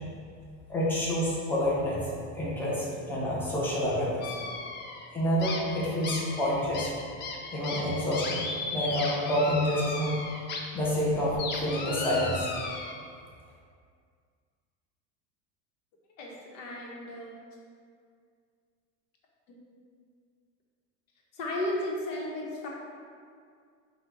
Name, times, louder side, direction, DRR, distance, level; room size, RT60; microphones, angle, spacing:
voice 1, 0.7-2.1 2.3-4.3 5.1-6.9 7.5-8.5 8.7-10.2 10.7-12.5, equal, 5° left, -6 dB, 0.9 m, -28 dB
sound 1, 4.2-5.1 5.4-10.6 10.9-12.9, left 3 dB, 30° left, 0.4 m, -36 dB
voice 2, 16.2-17.3 19.5-19.6 21.3-22.7, left 1 dB, 80° left, -2 dB, 1.1 m, -34 dB
5.3 x 2.4 x 3.9 m, 2.2 s
supercardioid pair, 130°, 38 cm